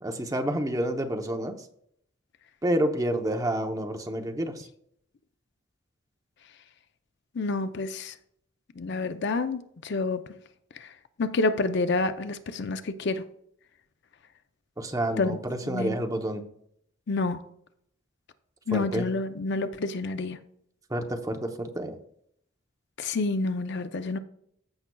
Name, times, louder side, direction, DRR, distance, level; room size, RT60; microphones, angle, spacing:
voice 1, 0.0-1.5 2.6-4.5 14.8-16.4 18.7-19.1 20.9-22.0, right 1 dB, 15° right, 0.8 m, -29 dB
voice 2, 7.4-8.1 8.8-10.2 11.2-13.2 15.2-15.4 15.7-16.0 17.1-17.4 18.7-20.4 23.0-24.2, left 3 dB, 60° left, 0.5 m, -28 dB
14.0 x 5.8 x 2.3 m
head